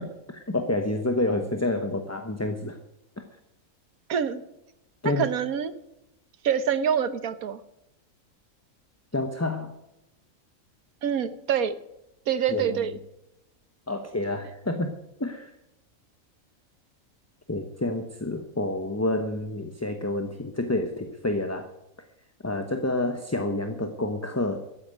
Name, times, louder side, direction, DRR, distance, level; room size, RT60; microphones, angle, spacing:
voice 1, 0.0-2.8 5.0-5.3 9.1-9.7 12.5-12.8 13.9-14.9 15.2-15.5 17.5-21.7 22.4-24.6, left 2 dB, 15° left, 6 dB, 0.9 m, -28 dB
voice 2, 4.1-4.4 5.0-5.7 6.4-7.6 11.0-11.7 12.3-13.0, right 8 dB, 90° right, 13 dB, 1.5 m, -26 dB
13.5 x 8.8 x 9.0 m, 0.88 s
omnidirectional pair, 1.5 m